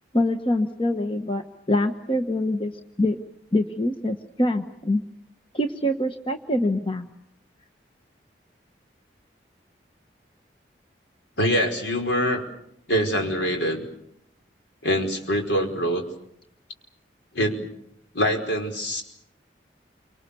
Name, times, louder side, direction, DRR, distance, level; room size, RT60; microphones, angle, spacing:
voice 1, 0.1-2.7 3.0-3.2 3.5-5.0 5.5-7.1, left 1 dB, 30° left, 6 dB, 1.3 m, -24 dB
voice 2, 11.4-12.4 12.9-13.8 14.8-16.0 17.3-17.7 18.1-19.0, equal, 80° left, 3 dB, 5.0 m, -24 dB
29.0 x 25.5 x 7.0 m, 0.76 s
head